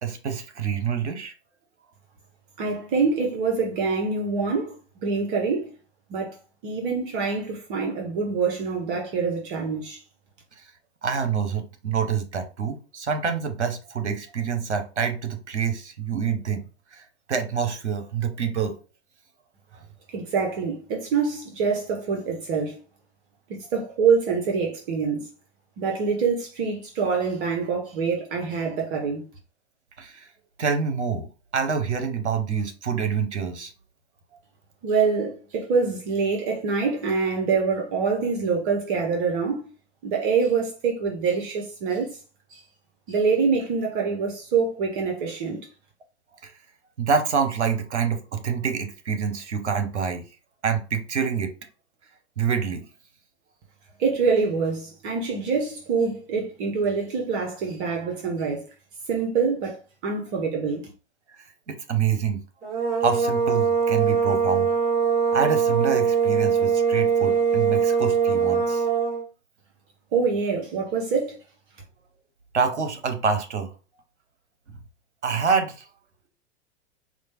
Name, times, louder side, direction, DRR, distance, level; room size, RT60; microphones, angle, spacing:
voice 1, 0.0-1.3 10.6-10.7 11.0-16.6 16.9-18.7 19.7-19.8 30.0-30.3 30.6-33.7 46.4-46.5 47.0-50.2 50.6-51.5 52.4-52.8 61.3-62.4 63.0-64.7 65.3-68.9 72.5-73.7 74.7-74.8 75.2-75.9, right 6 dB, 80° right, 0.8 m, -26 dB
voice 2, 2.6-5.7 6.1-6.3 6.6-10.0 20.1-22.8 23.5-25.3 25.8-29.2 34.8-39.6 40.0-42.2 42.5-42.6 43.1-45.7 54.0-58.6 59.1-59.8 60.0-60.9 70.1-71.4, right 5 dB, 50° right, 0.9 m, -25 dB
sound 1, 62.6-69.2, right 6 dB, 25° right, 1.8 m, -22 dB
4.4 x 2.2 x 2.9 m
figure-of-eight pair, 100°, 34 cm